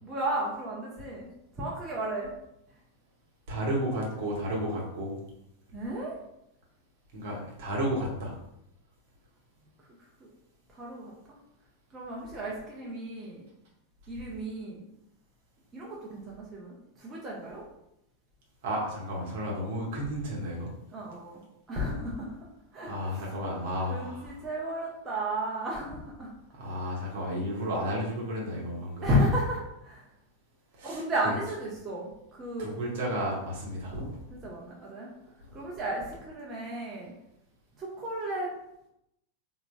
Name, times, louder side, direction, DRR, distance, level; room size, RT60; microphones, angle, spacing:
voice 1, 0.0-1.3 1.5-2.3 5.7-6.2 10.7-11.1 11.9-13.4 14.1-14.8 15.7-17.6 20.9-21.4 21.7-22.4 22.7-22.9 23.9-26.3 29.0-30.1 30.8-32.7 34.4-35.1 35.5-37.1 37.8-38.5, equal, 20° right, -5 dB, 0.6 m, -33 dB
voice 2, 3.5-5.2 7.1-8.3 18.6-20.7 22.8-24.4 26.5-29.1 30.7-31.3 32.6-34.2 35.4-35.6, equal, 50° right, -3 dB, 0.9 m, -32 dB
3.8 x 2.1 x 2.2 m, 0.81 s
figure-of-eight pair, 90°, 0 cm